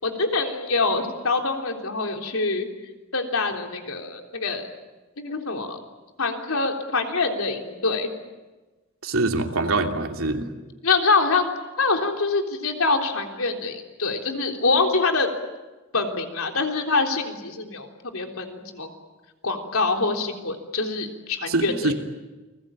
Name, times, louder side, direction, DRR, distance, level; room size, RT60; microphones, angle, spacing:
voice 1, 0.0-2.7 3.1-4.7 5.2-5.8 6.2-8.1 10.8-11.5 11.8-15.3 15.9-18.9 19.4-21.9, left 3 dB, 85° left, 3 dB, 3.6 m, -25 dB
voice 2, 9.0-10.5 21.5-21.9, right 2 dB, 80° right, 3 dB, 2.9 m, -24 dB
30.0 x 20.5 x 9.0 m, 1.2 s
head